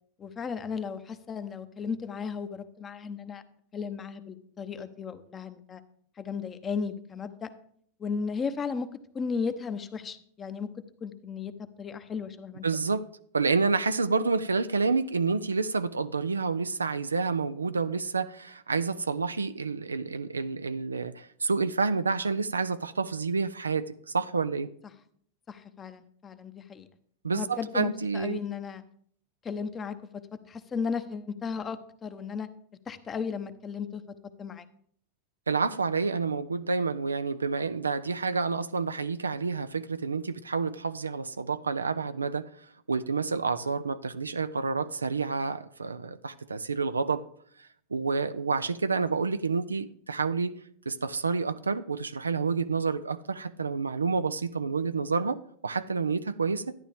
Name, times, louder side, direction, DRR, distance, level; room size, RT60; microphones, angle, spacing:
voice 1, 0.2-3.4 3.7-5.8 6.2-7.5 8.0-8.9 9.1-10.7 11.0-12.6 25.5-26.9 27.3-28.8 29.4-32.5 32.9-34.0 34.4-34.6, left 5 dB, 25° left, 0.9 m, -35 dB
voice 2, 12.6-13.0 13.3-24.7 27.2-28.4 35.5-47.2 47.6-50.5 50.9-56.7, right 4 dB, 90° right, 0.4 m, -29 dB
12.0 x 9.9 x 3.4 m
hypercardioid pair, 95°, 0 cm